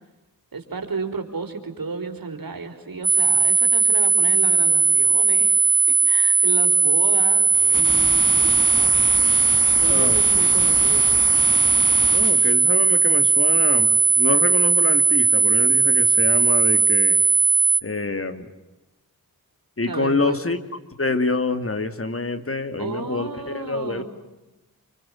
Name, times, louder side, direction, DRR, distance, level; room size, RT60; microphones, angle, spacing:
voice 1, 0.5-9.5 9.7-11.1 19.9-20.5 22.8-24.0, right 4 dB, 70° right, 6 dB, 4.2 m, -33 dB
tinnitus acufeno pro, 3.0-17.8, right 5 dB, 20° right, 1.9 m, -18 dB
sound 1, 7.5-12.5, left 3 dB, 60° left, 3.6 m, -32 dB
voice 2, 9.8-10.2 12.1-17.2 17.8-18.5 19.8-20.6 21.0-24.0, left 3 dB, 40° left, 10 dB, 2.3 m, -26 dB
28.0 x 25.5 x 7.6 m, 1.0 s
cardioid pair, 55°, 36 cm